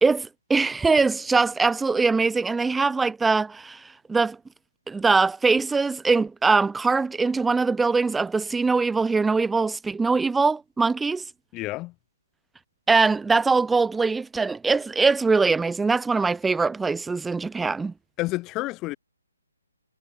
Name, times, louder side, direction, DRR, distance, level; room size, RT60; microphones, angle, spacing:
voice 1, 0.0-3.8 4.1-4.4 4.9-11.2 12.9-17.9, right 4 dB, 5° right, 0.8 m, -22 dB
voice 2, 11.5-11.9 18.2-19.0, left 20 dB, 20° left, 3.1 m, -29 dB
figure-of-eight pair, 140°, 0 cm